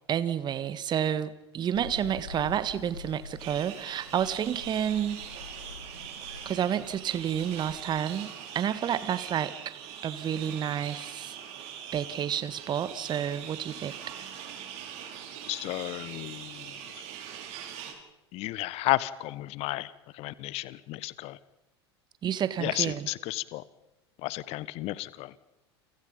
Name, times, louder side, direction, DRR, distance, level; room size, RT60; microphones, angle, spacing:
voice 1, 0.1-5.2 6.4-9.5 10.0-11.4 11.9-14.0 22.2-23.1, right 9 dB, 30° right, 15 dB, 1.5 m, -30 dB
sound 1, 1.7-8.0, left 4 dB, 85° left, 1.3 m, -46 dB
sound 2, 3.4-17.9, right 9 dB, 50° right, 5.8 m, -42 dB
voice 2, 15.5-16.7 18.3-21.4 22.6-23.6 24.2-25.3, left 18 dB, 45° left, 19 dB, 1.3 m, -33 dB
29.5 x 24.5 x 5.4 m, 0.95 s
figure-of-eight pair, 80°, 14 cm